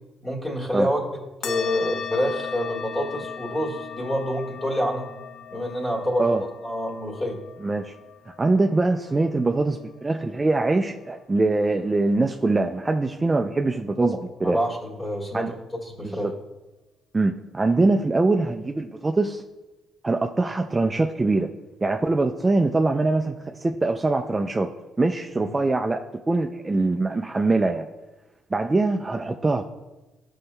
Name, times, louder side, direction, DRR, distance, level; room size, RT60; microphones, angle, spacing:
voice 1, 0.2-5.1 5.5-7.4 14.4-16.3 25.4-25.5, equal, 20° left, -2 dB, 1.6 m, -27 dB
sound 1, 1.4-10.3, left 7 dB, 75° left, 0.4 m, -38 dB
voice 2, 7.6-7.9 8.4-14.6 15.3-15.5 16.0-16.3 17.1-19.4 20.0-21.5 21.8-24.7 25.0-27.9 28.5-29.6, right 2 dB, 20° right, 4 dB, 0.3 m, -23 dB
11.0 x 5.3 x 2.2 m, 1.1 s
cardioid pair, 90°, 0 cm